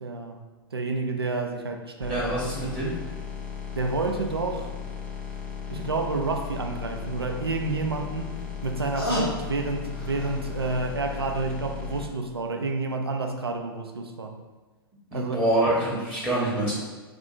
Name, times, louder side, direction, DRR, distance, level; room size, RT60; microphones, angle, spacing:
voice 1, 0.0-0.4 0.7-2.3 3.8-4.7 5.7-14.4 15.1-15.4, right 3 dB, 85° right, 4 dB, 0.4 m, -29 dB
sound 1, 2.0-12.1, left 7 dB, 10° left, 0.4 m, -36 dB
voice 2, 2.1-2.9 15.1-16.7, right 1 dB, 10° right, -8 dB, 0.8 m, -25 dB
sound 2, 5.3-5.4 5.7-5.8 7.7-10.9 11.2-11.3, left 1 dB, 80° left, 1.1 m, -34 dB
2.6 x 2.4 x 3.8 m, 1.3 s
figure-of-eight pair, 100°, 13 cm